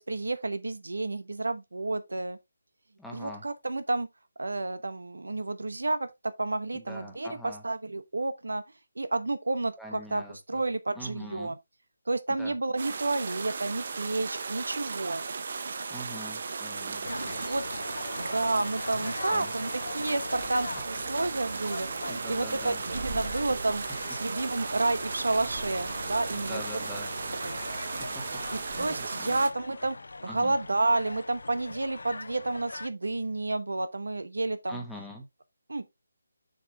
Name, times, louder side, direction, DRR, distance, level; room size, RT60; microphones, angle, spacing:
voice 1, 0.0-2.4 3.1-4.1 4.4-8.6 9.0-11.5 12.1-15.3 17.1-17.6 18.1-23.8 24.1-26.6 27.4-27.6 28.8-30.0 30.2-34.8 35.7-35.8, right 2 dB, 85° right, 1.0 m, -30 dB
voice 2, 3.0-3.4 6.7-7.6 9.8-10.6 10.9-11.6 12.4-12.5 15.9-17.6 19.0-19.5 22.1-22.8 26.3-27.1 27.8-28.2 28.7-29.4 30.3-30.6 34.7-35.3, equal, ahead, 1.2 m, -44 dB
sound 1, 12.8-29.5, right 4 dB, 50° right, 0.8 m, -36 dB
sound 2, 17.0-32.9, left 3 dB, 75° left, 0.5 m, -41 dB
sound 3, 20.3-29.1, right 3 dB, 35° right, 1.1 m, -45 dB
6.5 x 4.9 x 3.4 m
figure-of-eight pair, 165°, 0 cm